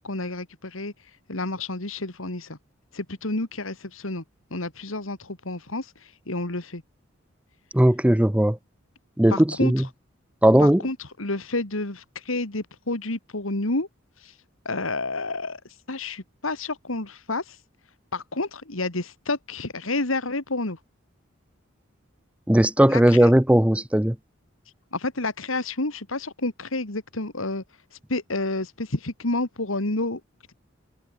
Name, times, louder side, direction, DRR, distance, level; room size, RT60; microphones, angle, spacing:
voice 1, 0.0-2.6 2.9-4.2 4.5-6.8 9.3-9.9 10.6-13.9 14.2-14.4 14.6-17.6 18.1-20.8 22.9-23.3 24.9-27.6 27.9-30.2, left 2 dB, 80° left, 2.7 m, -30 dB
voice 2, 7.7-8.6 9.2-9.8 10.4-10.8 22.5-24.2, right 1 dB, 5° right, 0.6 m, -18 dB
head